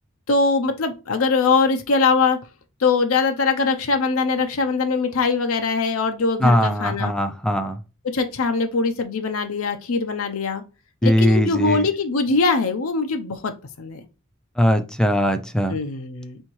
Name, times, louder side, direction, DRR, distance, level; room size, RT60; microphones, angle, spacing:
voice 1, 0.3-2.4 2.8-7.1 8.0-10.6 11.0-13.5 13.8-14.0 15.7-16.4, left 4 dB, 85° left, 0.6 m, -22 dB
voice 2, 6.4-7.8 11.0-11.8 14.6-15.8, equal, 5° left, 0.4 m, -20 dB
4.4 x 3.5 x 3.0 m
head